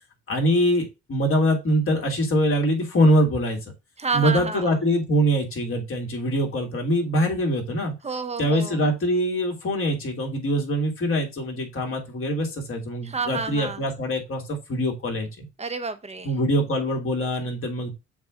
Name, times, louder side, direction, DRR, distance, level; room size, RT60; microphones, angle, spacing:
voice 1, 0.3-3.6 4.1-7.9 8.4-15.5 16.2-17.9, equal, 45° left, 2.4 m, -23 dB
voice 2, 4.0-4.8 8.0-8.8 13.0-13.8 15.6-16.3, right 4 dB, 20° right, 1.0 m, -29 dB
7.2 x 2.6 x 5.0 m
cardioid pair, 90°, 30 cm